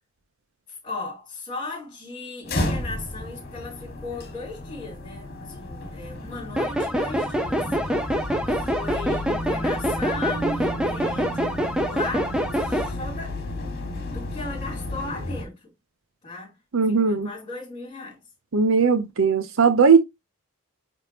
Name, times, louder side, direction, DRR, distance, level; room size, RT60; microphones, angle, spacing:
voice 1, 0.8-7.6 8.5-11.6 11.9-13.3 13.8-15.6 16.2-16.5 16.8-18.2, left 3 dB, 30° left, 3.6 m, -36 dB
sound 1, 2.4-15.4, left 1 dB, 45° left, 1.9 m, -33 dB
sound 2, 6.6-12.9, equal, 5° right, 0.8 m, -26 dB
voice 2, 16.7-17.3 18.5-20.0, right 5 dB, 65° right, 0.7 m, -18 dB
9.1 x 3.6 x 2.9 m
head